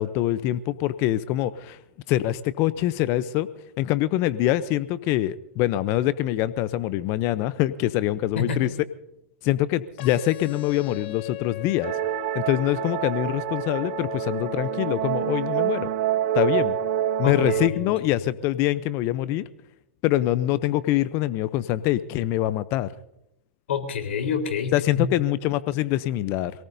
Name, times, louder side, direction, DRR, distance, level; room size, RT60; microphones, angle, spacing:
voice 1, 0.0-1.8 2.1-3.5 3.8-8.7 9.4-11.9 12.3-15.9 16.3-16.8 17.2-19.4 20.0-22.9 24.7-26.5, left 14 dB, 40° left, 16 dB, 0.6 m, -24 dB
sound 1, 10.0-18.0, left 16 dB, 55° left, 1.8 m, -38 dB
sound 2, 11.8-17.7, right 15 dB, 50° right, 0.5 m, -27 dB
voice 2, 17.2-17.9 23.7-25.1, left 6 dB, 75° left, 5 dB, 3.9 m, -28 dB
27.0 x 18.5 x 2.7 m, 0.81 s
hypercardioid pair, 130°, 7 cm